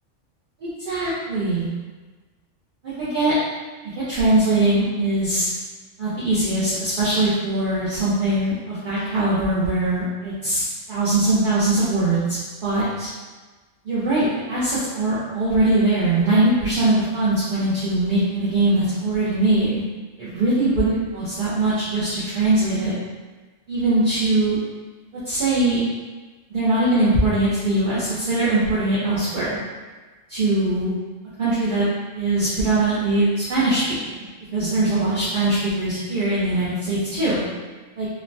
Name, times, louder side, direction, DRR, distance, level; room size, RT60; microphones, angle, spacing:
voice 1, 0.6-1.7 2.8-3.3 4.0-5.5 6.0-13.1 13.8-19.8 20.2-22.9 23.7-24.6 25.2-25.8 26.5-29.6 30.3-30.9 31.4-31.9 32.1-34.1 34.5-37.4 38.0-38.1, right 2 dB, 50° right, -9 dB, 0.6 m, -21 dB
3.1 x 2.1 x 2.5 m, 1.3 s
omnidirectional pair, 1.3 m